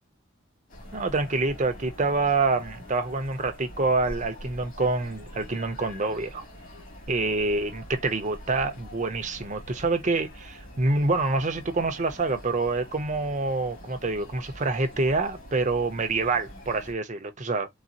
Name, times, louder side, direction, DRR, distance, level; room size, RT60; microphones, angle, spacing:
sound 1, 0.7-16.9, equal, 40° left, 1.6 m, -45 dB
voice 1, 0.9-6.4 7.1-17.7, right 3 dB, 35° right, 0.7 m, -26 dB
4.0 x 2.1 x 2.5 m
head